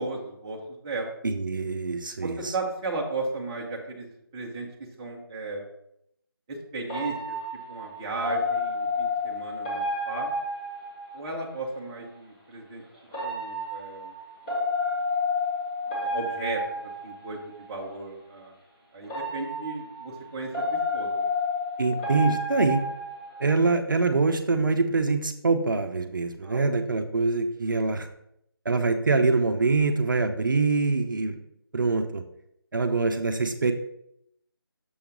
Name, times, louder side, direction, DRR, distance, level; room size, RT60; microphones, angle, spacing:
voice 1, 0.0-1.1 2.2-4.7 5.0-5.7 6.5-7.4 7.7-10.3 11.1-12.8 13.2-14.1 16.0-18.5 18.9-20.6 20.9-21.3 26.4-26.7, right 3 dB, 10° right, -3 dB, 0.8 m, -35 dB
voice 2, 1.2-2.5 21.8-22.8 23.4-28.1 28.6-31.4 31.7-32.2 32.7-33.7, right 3 dB, 55° right, 7 dB, 0.7 m, -24 dB
sound 1, 6.9-11.5 13.1-17.7 19.0-23.7, left 2 dB, 15° left, 1.6 m, -31 dB
6.9 x 3.5 x 5.8 m, 0.76 s
figure-of-eight pair, 170°, 13 cm